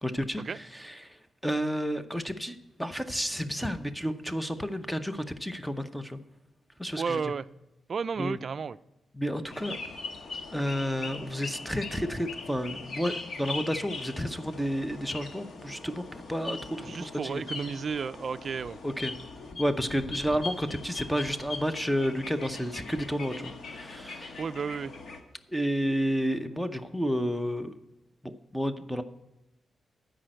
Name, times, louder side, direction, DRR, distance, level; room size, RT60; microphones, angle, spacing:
voice 1, 0.0-0.4 0.7-1.0 1.4-6.2 6.8-7.3 8.2-8.4 9.1-9.8 10.5-17.4 18.8-19.1 19.6-24.4 25.5-27.7 28.2-29.0, equal, 5° left, 10 dB, 0.7 m, -31 dB
voice 2, 7.0-7.5 7.9-8.8 16.8-18.8 24.4-24.9, right 5 dB, 50° right, 15 dB, 0.3 m, -32 dB
sound 1, 9.5-25.2, left 3 dB, 65° left, 1.2 m, -41 dB
13.0 x 5.1 x 7.6 m, 0.94 s
cardioid pair, 105°, 0 cm